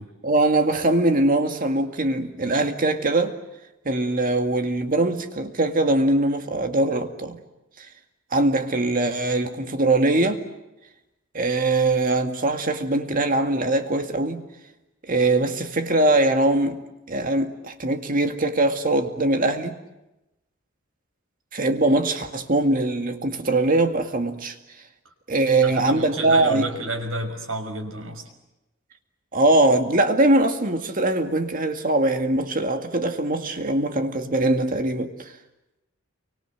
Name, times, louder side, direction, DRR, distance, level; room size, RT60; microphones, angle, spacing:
voice 1, 0.2-3.4 3.8-7.4 7.8-7.9 8.3-10.4 11.3-14.5 15.1-16.8 17.1-19.8 21.5-24.6 25.3-26.7 29.3-35.3, right 2 dB, 45° right, 2.2 m, -22 dB
voice 2, 25.6-28.2, right 1 dB, 85° right, 5.7 m, -31 dB
29.0 x 24.5 x 7.9 m
head